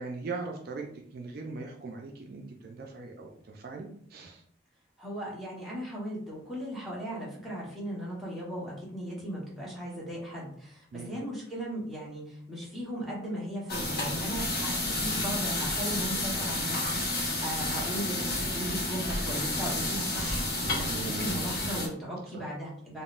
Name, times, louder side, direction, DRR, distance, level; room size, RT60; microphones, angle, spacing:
voice 1, 0.0-4.4 10.9-11.2 20.9-21.3 22.3-22.4, right 3 dB, 55° right, 2 dB, 0.3 m, -40 dB
voice 2, 5.0-23.0, equal, ahead, -7 dB, 0.9 m, -37 dB
sound 1, 13.7-21.9, left 1 dB, 55° left, 0.9 m, -31 dB
3.6 x 2.0 x 2.4 m, 0.63 s
head